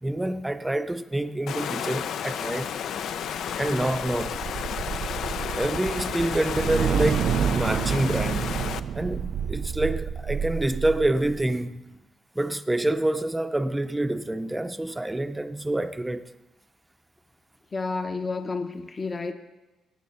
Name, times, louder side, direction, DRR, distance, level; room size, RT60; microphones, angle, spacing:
voice 1, 0.0-2.7 3.6-4.4 5.6-8.6 8.9-12.0 12.3-16.3, right 1 dB, 10° right, 0.6 m, -27 dB
Water, 1.5-8.8, left 8 dB, 70° left, 0.5 m, -32 dB
sound 1, 3.0-11.4, right 8 dB, 60° right, 0.3 m, -29 dB
voice 2, 17.7-19.3, left 4 dB, 30° left, 0.9 m, -30 dB
17.5 x 8.5 x 4.2 m
cardioid pair, 90°, 0 cm